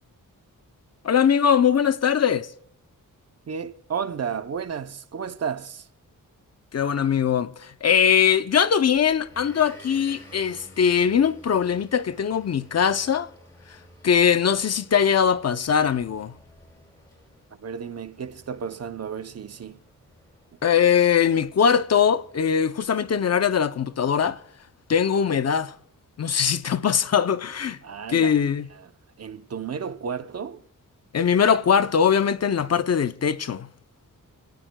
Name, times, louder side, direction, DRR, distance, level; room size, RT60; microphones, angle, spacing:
voice 1, 1.0-2.5 6.7-13.3 14.0-16.3 20.6-24.4 24.9-25.7 26.2-27.8 28.1-28.7 31.1-33.7, left 7 dB, 50° left, 0.6 m, -21 dB
voice 2, 3.5-5.9 17.6-19.8 27.8-28.4 28.7-28.9 29.2-30.6, right 6 dB, 50° right, 0.6 m, -33 dB
Motor vehicle (road) / Engine, 8.9-23.1, equal, 10° left, 6.3 m, -53 dB
30.0 x 18.0 x 2.2 m
wide cardioid pair, 150°, 33 cm